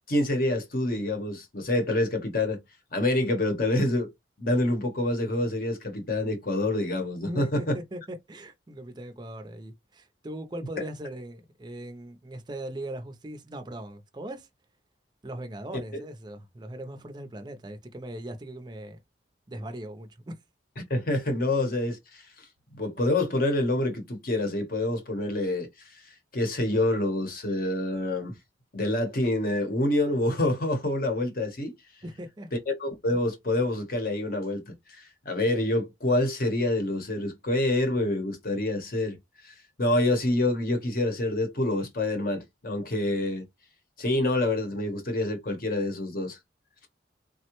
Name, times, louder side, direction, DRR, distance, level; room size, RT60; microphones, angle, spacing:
voice 1, 0.1-2.6 2.9-4.1 4.4-7.8 20.9-22.5 22.7-26.0 26.3-28.4 28.7-31.7 32.8-39.2 39.4-43.5 44.0-46.4, left 1 dB, 50° left, 0.8 m, -27 dB
voice 2, 7.2-14.5 15.2-19.0 19.5-20.4 32.0-32.5, right 1 dB, 25° right, 0.5 m, -39 dB
3.5 x 2.1 x 2.9 m
head